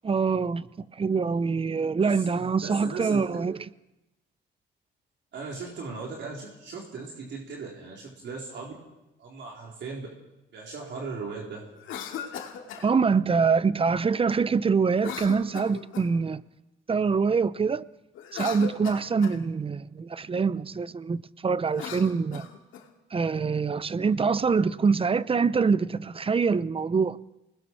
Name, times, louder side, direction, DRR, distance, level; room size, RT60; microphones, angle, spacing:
voice 1, 0.0-0.7 0.9-3.6 12.8-16.4 16.9-17.8 18.3-22.5 23.1-27.2, right 5 dB, 30° right, 0.7 m, -25 dB
voice 2, 2.0-3.2 5.3-8.7 9.2-10.1 10.5-11.6, right 4 dB, 65° right, 4.2 m, -38 dB
Cough, 11.8-12.9 15.0-16.2 18.1-19.4 21.6-22.9, left 8 dB, 85° left, 2.4 m, -38 dB
28.0 x 20.0 x 4.7 m
cardioid pair, 90°, 20 cm